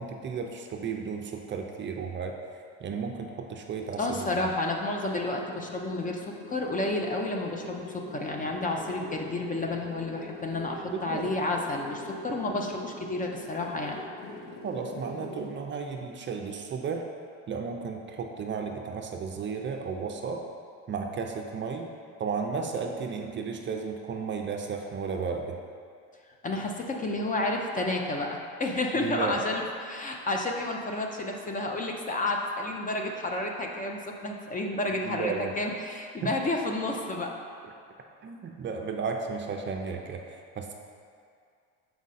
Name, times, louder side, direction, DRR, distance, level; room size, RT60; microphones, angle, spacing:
voice 1, 0.0-2.4 2.8-4.4 10.9-11.4 14.6-17.1 17.5-20.4 20.9-21.9 22.2-25.6 29.0-29.4 35.0-35.5 36.2-36.3 38.2-40.7, right 5 dB, 30° right, 2 dB, 0.5 m, -34 dB
sound 1, 3.9-15.6, left 1 dB, 75° left, 1.4 m, -43 dB
voice 2, 4.0-14.0 26.4-37.3, left 2 dB, 25° left, 1 dB, 0.5 m, -31 dB
6.2 x 4.6 x 4.1 m, 2.3 s
cardioid pair, 120°, 36 cm